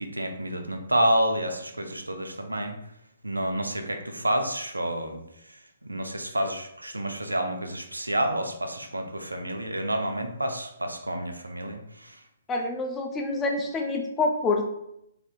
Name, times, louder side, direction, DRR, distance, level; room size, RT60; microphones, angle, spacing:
voice 1, 0.0-2.7 3.2-5.2 5.8-12.2, right 1 dB, 85° right, 5 dB, 0.4 m, -29 dB
voice 2, 12.5-14.7, left 2 dB, 15° left, 2 dB, 0.4 m, -27 dB
3.4 x 2.7 x 2.4 m, 0.79 s
figure-of-eight pair, 130°, 0 cm